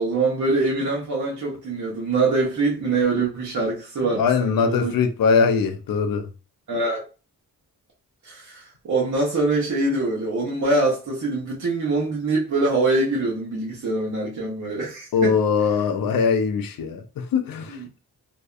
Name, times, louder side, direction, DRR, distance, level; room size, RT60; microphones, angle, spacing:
voice 1, 0.0-4.9 6.7-7.0 8.2-15.4, right 3 dB, 50° right, 0.8 m, -24 dB
voice 2, 4.2-6.3 15.1-17.8, left 5 dB, 65° left, 0.5 m, -21 dB
2.6 x 2.2 x 2.3 m
cardioid pair, 50°, 38 cm